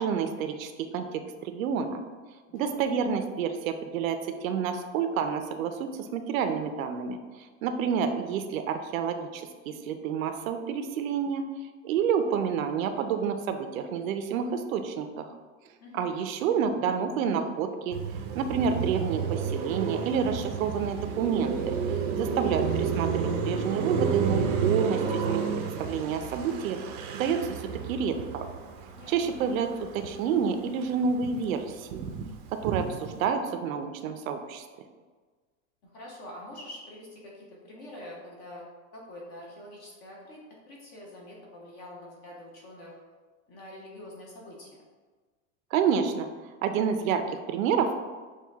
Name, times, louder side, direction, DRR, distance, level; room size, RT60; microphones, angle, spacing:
voice 1, 0.0-2.0 2.5-11.4 11.8-15.3 15.9-25.4 25.8-28.5 29.1-32.0 32.5-34.6 45.7-46.3 46.6-48.0, right 6 dB, 80° right, 8 dB, 0.6 m, -29 dB
Car passing by, 17.9-30.4 30.7-33.2, right 6 dB, 40° right, 0.5 m, -31 dB
voice 2, 35.8-38.6 38.9-40.4 40.7-43.0 43.5-44.7, left 1 dB, 20° left, -2 dB, 0.4 m, -45 dB
6.5 x 2.3 x 3.4 m, 1.4 s
supercardioid pair, 165°, 40 cm